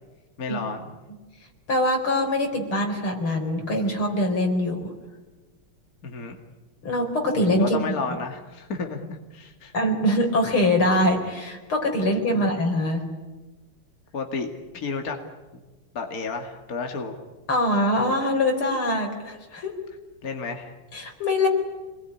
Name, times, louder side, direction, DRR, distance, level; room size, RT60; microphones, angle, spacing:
voice 1, 0.4-1.0 6.0-6.4 7.6-9.7 12.3-12.6 14.1-15.2 15.9-17.1 20.2-20.8, left 4 dB, 45° left, 4 dB, 2.5 m, -32 dB
voice 2, 1.7-4.9 6.8-7.8 9.7-13.0 17.5-19.7 20.9-21.5, left 1 dB, 80° left, 3 dB, 5.4 m, -23 dB
27.0 x 21.0 x 9.9 m, 1.2 s
omnidirectional pair, 2.3 m